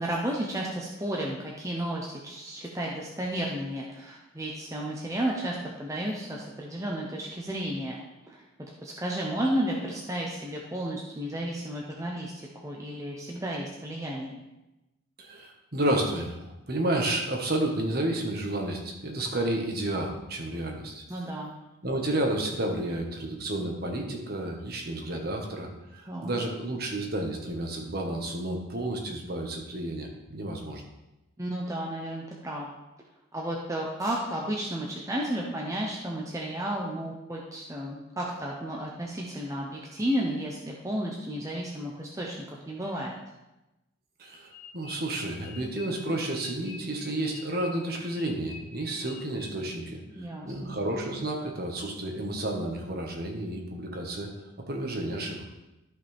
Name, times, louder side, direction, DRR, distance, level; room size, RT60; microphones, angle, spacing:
voice 1, 0.0-8.0 8.3-8.4 8.8-14.4 21.1-21.5 26.1-26.3 31.4-32.7 33.3-42.4 42.7-43.2 50.2-50.8, right 1 dB, 15° right, -2 dB, 0.9 m, -32 dB
voice 2, 15.2-21.0 21.8-30.8 44.2-54.3 54.6-55.4, right 1 dB, 50° right, 1 dB, 1.6 m, -31 dB
sound 1, 44.5-49.8, left 5 dB, 35° left, 1.5 m, -48 dB
13.0 x 5.9 x 3.6 m, 0.97 s
head